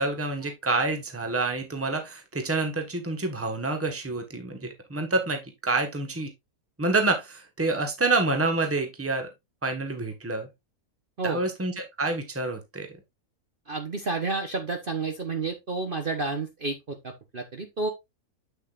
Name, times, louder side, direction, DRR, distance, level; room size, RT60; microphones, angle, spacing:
voice 1, 0.0-6.3 6.8-9.3 9.6-10.5 11.2-12.9, right 3 dB, 10° right, 1.3 m, -27 dB
voice 2, 13.7-17.9, right 3 dB, 40° right, 1.2 m, -30 dB
8.2 x 6.8 x 2.5 m
omnidirectional pair, 1.6 m